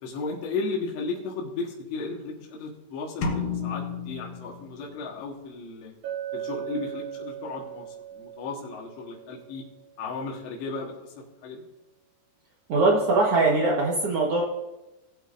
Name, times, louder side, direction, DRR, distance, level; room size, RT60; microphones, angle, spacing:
voice 1, 0.0-5.9 6.3-9.7 10.0-11.6, left 4 dB, 85° left, -2 dB, 3.7 m, -35 dB
sound 1, 3.2-5.2, left 5 dB, 70° left, 1.7 m, -32 dB
Chink clink, 6.0-10.0, right 10 dB, 50° right, 4.4 m, -38 dB
voice 2, 12.7-14.4, right 3 dB, 70° right, -2 dB, 1.3 m, -21 dB
19.0 x 8.4 x 2.6 m, 0.99 s
omnidirectional pair, 4.8 m